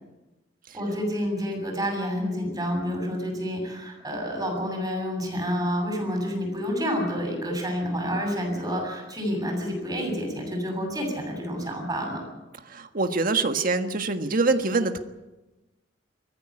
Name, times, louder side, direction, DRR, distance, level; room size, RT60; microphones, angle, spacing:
voice 1, 0.7-12.2, equal, 20° right, 2 dB, 7.8 m, -29 dB
voice 2, 12.7-15.0, right 3 dB, 50° right, 7 dB, 1.6 m, -24 dB
21.0 x 15.0 x 9.9 m, 1.1 s
head